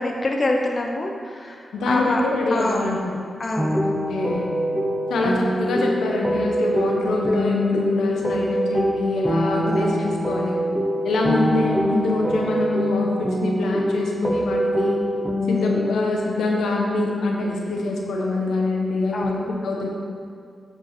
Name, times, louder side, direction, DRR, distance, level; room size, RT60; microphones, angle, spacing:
voice 1, 0.0-2.2 2.5-2.9 3.4-3.8 9.6-9.9 15.5-15.8 19.1-19.3, left 2 dB, 45° left, 2 dB, 0.8 m, -26 dB
voice 2, 1.7-3.2 3.8-4.4 5.1-10.6 11.0-15.0 15.5-19.9, left 2 dB, 85° left, -1 dB, 1.0 m, -24 dB
sound 1, 3.6-16.1, equal, 5° right, 0.7 m, -24 dB
9.0 x 5.3 x 4.4 m, 2.3 s
cardioid pair, 55°, 0 cm